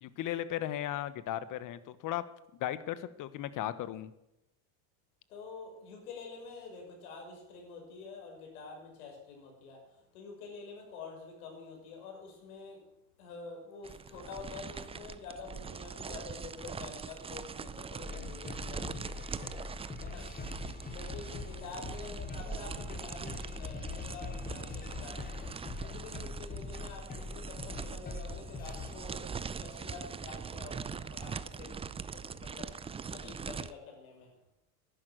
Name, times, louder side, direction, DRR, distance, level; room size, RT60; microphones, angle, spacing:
voice 1, 0.0-2.2 2.6-4.1, left 12 dB, 45° left, 15 dB, 1.3 m, -36 dB
voice 2, 5.3-12.8 13.2-19.6 20.0-20.3 20.9-25.5 25.8-31.8 32.1-34.3, left 4 dB, 90° left, 1 dB, 6.3 m, -47 dB
sound 1, 13.8-33.7, right 6 dB, 15° right, 0.5 m, -42 dB
sound 2, 18.0-29.0, left 4 dB, 20° left, 1.6 m, -42 dB
11.5 x 11.0 x 9.3 m, 0.88 s
supercardioid pair, 115°, 43 cm